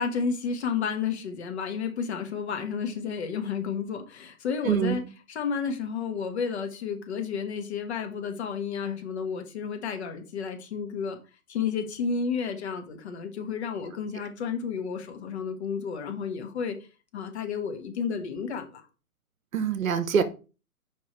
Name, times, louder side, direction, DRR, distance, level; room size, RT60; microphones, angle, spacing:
voice 1, 0.0-5.0 5.3-11.2 11.5-16.7 17.1-18.8, left 6 dB, 45° left, 1.4 m, -31 dB
voice 2, 4.7-5.0 19.5-20.2, right 7 dB, 60° right, 1.0 m, -24 dB
5.2 x 5.1 x 4.4 m
figure-of-eight pair, 135°, 46 cm